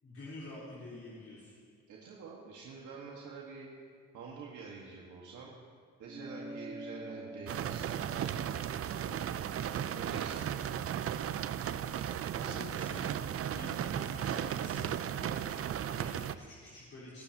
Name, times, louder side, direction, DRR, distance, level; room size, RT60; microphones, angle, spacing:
voice 1, 0.0-1.6 2.0-2.1 6.3-6.6 9.0-9.3 11.8-12.1 12.4-13.1 13.5-17.2, left 2 dB, 45° left, -9 dB, 3.9 m, -48 dB
voice 2, 1.9-3.7 4.1-5.5 6.0-8.4 9.7-10.9 12.3-12.9, right 4 dB, 80° right, -3 dB, 1.7 m, -47 dB
sound 1, 6.1-10.9, right 1 dB, 20° right, 0.8 m, -48 dB
sound 2, 7.5-16.4, right 9 dB, 50° right, 0.5 m, -35 dB
22.0 x 12.0 x 2.9 m, 2.1 s
cardioid pair, 90°, 30 cm